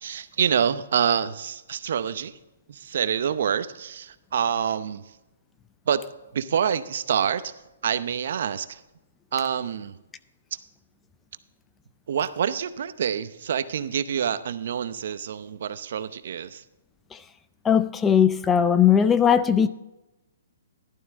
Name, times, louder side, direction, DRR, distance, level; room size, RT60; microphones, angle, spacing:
voice 1, 0.0-2.4 2.7-5.2 5.9-6.0 6.3-7.6 7.8-8.8 9.3-10.0 10.5-10.6 12.1-16.6, right 8 dB, 60° right, 0.7 m, -27 dB
voice 2, 17.6-19.7, left 8 dB, 10° left, 0.4 m, -19 dB
12.0 x 11.0 x 3.6 m
hypercardioid pair, 150°, 0 cm